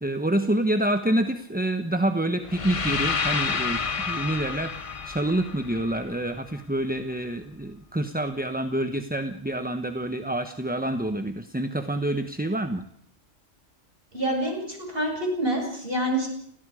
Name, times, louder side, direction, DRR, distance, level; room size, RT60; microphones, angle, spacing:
voice 1, 0.0-4.7 5.0-12.8, right 1 dB, 10° right, 8 dB, 0.9 m, -27 dB
sound 1, 2.4-6.5, left 5 dB, 30° left, 0.8 m, -29 dB
voice 2, 14.1-16.3, right 1 dB, 45° right, 1 dB, 7.5 m, -27 dB
30.0 x 19.0 x 5.0 m, 0.68 s
omnidirectional pair, 1.3 m